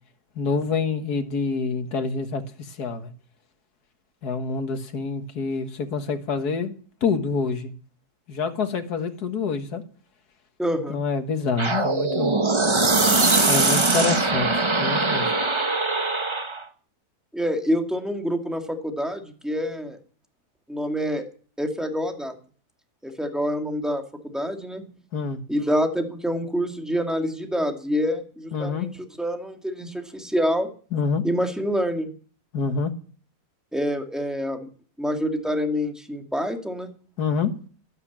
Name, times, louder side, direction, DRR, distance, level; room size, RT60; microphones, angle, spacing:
voice 1, 0.4-3.1 4.2-6.7 7.0-7.7 8.3-9.8 10.9-12.4 13.5-15.3 25.1-25.4 28.5-28.9 30.9-31.2 32.5-32.9 37.2-37.5, left 5 dB, 85° left, 2.0 m, -26 dB
voice 2, 10.6-11.0 17.3-20.0 20.7-21.2 21.6-22.4 23.0-24.9 25.5-28.9 29.2-30.7 31.2-32.1 33.7-34.7 35.0-36.9, equal, ahead, 2.1 m, -26 dB
sound 1, 11.6-16.6, right 3 dB, 20° right, 1.1 m, -21 dB
12.5 x 12.0 x 7.4 m
omnidirectional pair, 1.6 m